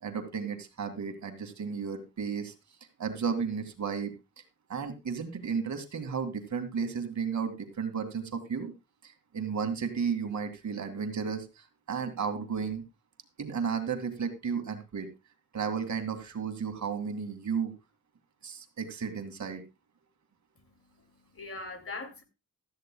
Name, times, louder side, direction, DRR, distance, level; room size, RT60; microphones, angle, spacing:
voice 1, 0.0-2.5 3.0-4.1 4.7-8.7 9.0-12.8 13.4-15.1 15.5-17.7 18.4-19.6, right 6 dB, 55° right, 2.1 m, -33 dB
voice 2, 20.6-22.2, left 3 dB, 40° left, 2.5 m, -42 dB
16.0 x 13.0 x 2.2 m
cardioid pair, 110°, 34 cm